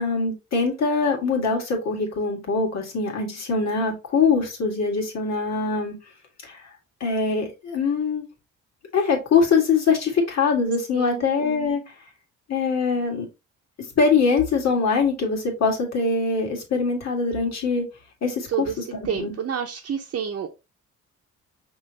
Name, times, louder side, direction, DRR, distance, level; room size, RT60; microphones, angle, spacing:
voice 1, 0.0-6.0 6.4-6.6 7.0-8.2 8.9-11.8 12.5-13.3 14.0-17.9 18.2-18.8 19.1-19.3, left 4 dB, 60° left, 2.0 m, -23 dB
voice 2, 10.9-11.2 18.5-18.7 19.0-20.5, right 7 dB, 50° right, 0.8 m, -28 dB
5.4 x 3.1 x 2.9 m
cardioid pair, 90°, 30 cm